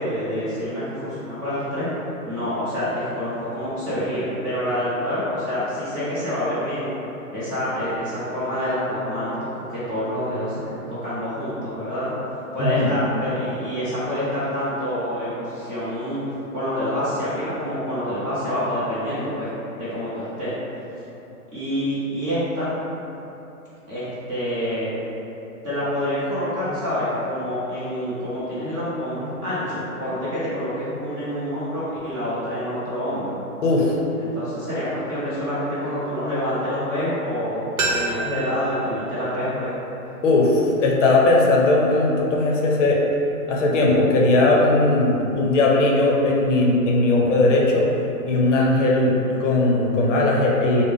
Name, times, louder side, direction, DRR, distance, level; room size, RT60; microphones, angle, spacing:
voice 1, 0.0-1.9 2.2-6.9 7.3-12.1 12.5-16.2 16.5-20.5 21.5-22.7 23.9-24.9 25.6-33.4 34.2-37.6 37.9-39.7, equal, 15° right, -12 dB, 0.5 m, -27 dB
voice 2, 12.6-13.0 33.6-33.9 40.2-43.0 43.5-47.9 48.3-50.9, left 2 dB, 55° left, -2 dB, 0.6 m, -18 dB
sound 1, 37.8-40.6 40.9-41.0, right 2 dB, 70° right, 0.8 m, -30 dB
3.3 x 2.0 x 3.5 m, 3.0 s
hypercardioid pair, 135°, 44 cm